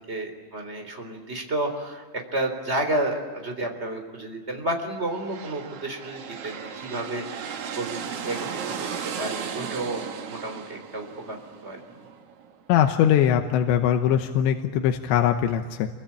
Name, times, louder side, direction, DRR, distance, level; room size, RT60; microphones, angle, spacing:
voice 1, 0.0-8.5 8.8-8.9 9.2-10.0 10.3-11.4 11.6-11.8, right 1 dB, 15° right, 4 dB, 3.4 m, -31 dB
sound 1, 4.9-12.6, right 7 dB, 90° right, 1.3 m, -36 dB
voice 2, 12.7-15.9, left 9 dB, 80° left, 5 dB, 3.2 m, -21 dB
28.0 x 24.0 x 8.8 m, 1.5 s
omnidirectional pair, 5.2 m